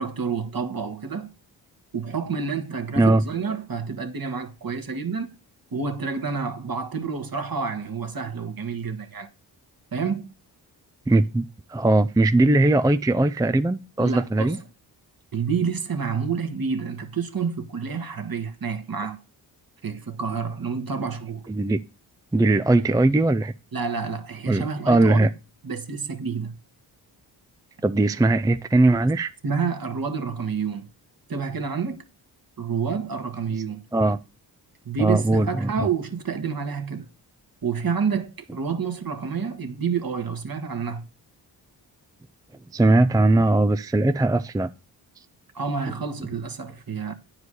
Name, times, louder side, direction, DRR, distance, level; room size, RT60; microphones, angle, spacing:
voice 1, 0.0-1.3 1.9-5.3 5.7-9.3 9.9-10.3 14.0-14.6 15.3-19.2 19.8-21.5 23.7-25.3 25.6-26.6 29.4-30.9 31.3-32.0 32.6-33.8 34.9-37.1 37.6-41.1 45.5-47.1, right 5 dB, 45° right, 1.8 m, -29 dB
voice 2, 11.1-11.4 11.7-14.6 21.5-21.8 22.3-23.5 24.5-25.3 27.8-29.3 33.9-34.2 35.0-35.9 42.7-44.7, right 2 dB, 10° right, 0.5 m, -20 dB
9.5 x 4.9 x 6.3 m
supercardioid pair, 40°, 47 cm